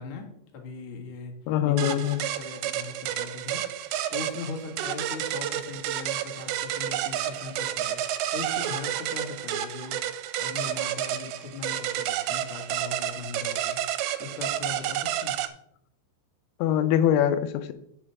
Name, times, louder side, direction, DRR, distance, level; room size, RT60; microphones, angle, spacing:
voice 1, 0.0-1.3 1.6-13.8 14.2-15.4, left 4 dB, 75° left, 1 dB, 1.2 m, -39 dB
voice 2, 1.5-2.2 16.6-17.7, left 10 dB, 90° left, 10 dB, 3.2 m, -23 dB
sound 1, 1.8-15.5, right 12 dB, 85° right, 2.7 m, -30 dB
7.9 x 7.7 x 4.7 m, 0.72 s
omnidirectional pair, 5.2 m